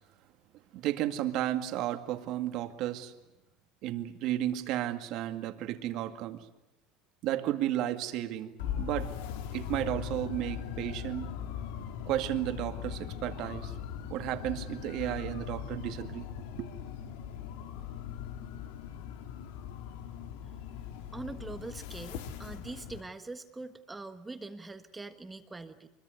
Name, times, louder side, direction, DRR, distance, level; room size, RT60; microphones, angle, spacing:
voice 1, 0.7-3.1 3.8-6.5 7.2-9.1 9.5-11.3 12.1-13.7 14.1-16.3 16.6-16.7, right 13 dB, 60° right, 8 dB, 2.1 m, -33 dB
sound 1, 8.6-23.0, left 8 dB, 85° left, 2.3 m, -40 dB
voice 2, 21.1-25.9, right 3 dB, 10° right, 9 dB, 1.4 m, -43 dB
24.5 x 22.5 x 9.4 m, 0.94 s
cardioid pair, 135°, 0 cm